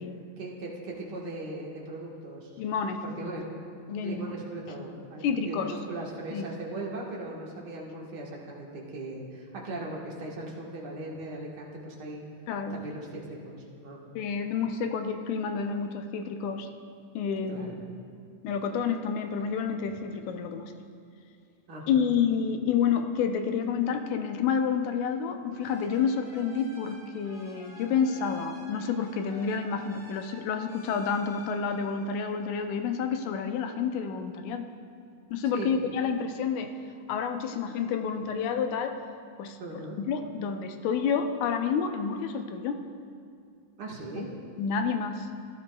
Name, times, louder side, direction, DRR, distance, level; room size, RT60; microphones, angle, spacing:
voice 1, 0.4-2.5 3.0-3.5 4.0-12.2 12.7-14.0 17.5-17.8 21.7-22.1 35.5-35.7 39.6-40.0 43.8-44.3, right 2 dB, 50° right, -3 dB, 1.4 m, -39 dB
voice 2, 2.6-3.3 3.9-4.4 5.2-5.7 6.3-6.4 12.5-12.8 14.2-16.7 17.2-17.7 18.4-20.9 21.9-34.7 35.3-36.7 37.1-39.0 39.4-42.8 44.2-44.3 44.6-45.3, left 6 dB, 80° left, 6 dB, 2.0 m, -29 dB
sound 1, 25.5-32.9, right 1 dB, 15° right, 1.7 m, -51 dB
16.5 x 12.0 x 2.3 m, 2.3 s
omnidirectional pair, 3.6 m